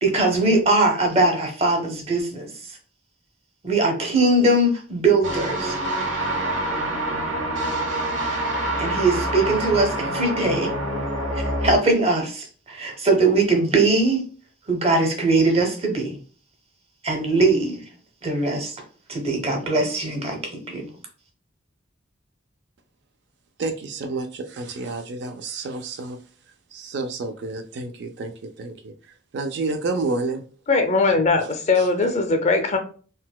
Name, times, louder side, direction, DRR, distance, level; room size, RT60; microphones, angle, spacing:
voice 1, 0.0-2.5 3.6-5.8 8.8-10.7 11.3-14.2 14.7-16.2 17.0-17.8 18.2-18.8 19.1-20.9, right 2 dB, 30° right, 3 dB, 0.7 m, -21 dB
sound 1, 5.2-11.8, right 1 dB, 80° right, 1.0 m, -26 dB
voice 2, 23.6-26.2 26.7-28.3 28.6-28.9 29.3-30.4 31.8-31.9, right 3 dB, 60° right, 8 dB, 0.3 m, -29 dB
voice 3, 30.7-32.8, left 3 dB, 35° left, 5 dB, 0.4 m, -20 dB
3.9 x 2.2 x 2.2 m, 0.41 s
head